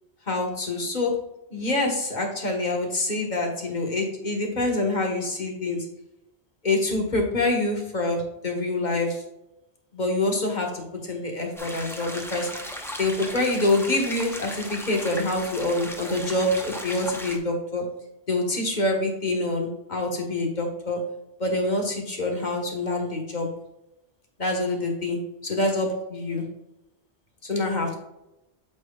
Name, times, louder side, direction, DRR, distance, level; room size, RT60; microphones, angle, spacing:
voice 1, 0.3-1.2 1.5-5.8 6.6-9.2 9.9-12.5 13.0-17.8 18.3-21.0 21.4-23.5 24.4-25.2 25.5-26.4 27.4-27.9, left 2 dB, 45° left, 2 dB, 1.4 m, -26 dB
sound 1, 11.6-17.4, equal, 5° left, 0.7 m, -36 dB
8.6 x 6.1 x 2.3 m, 0.91 s
omnidirectional pair, 1.1 m